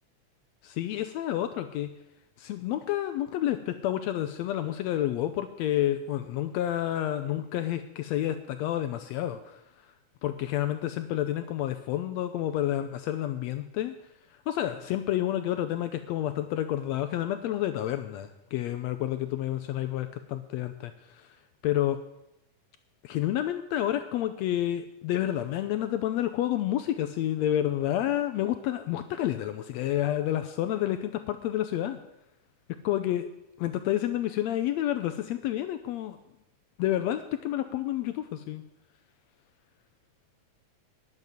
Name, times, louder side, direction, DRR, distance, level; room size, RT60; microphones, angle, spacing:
voice 1, 0.6-1.9 2.4-9.6 10.2-13.9 14.3-21.4 21.6-22.0 23.0-32.0 32.8-33.3 33.6-36.2 36.8-38.6, left 12 dB, 80° left, 9 dB, 1.6 m, -29 dB
10.5 x 7.4 x 8.1 m, 0.88 s
omnidirectional pair, 3.5 m